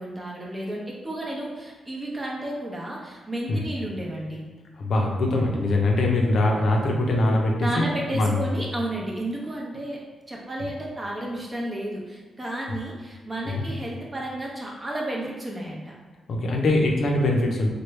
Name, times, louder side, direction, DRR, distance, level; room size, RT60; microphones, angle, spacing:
voice 1, 0.0-4.4 7.6-10.0 10.3-15.9, right 1 dB, 25° right, -2 dB, 0.8 m, -32 dB
voice 2, 4.8-7.8 8.1-8.4 13.5-13.6 16.3-17.7, left 2 dB, 65° left, 0 dB, 0.5 m, -22 dB
3.1 x 2.2 x 3.2 m, 1.4 s
cardioid pair, 85°, 0 cm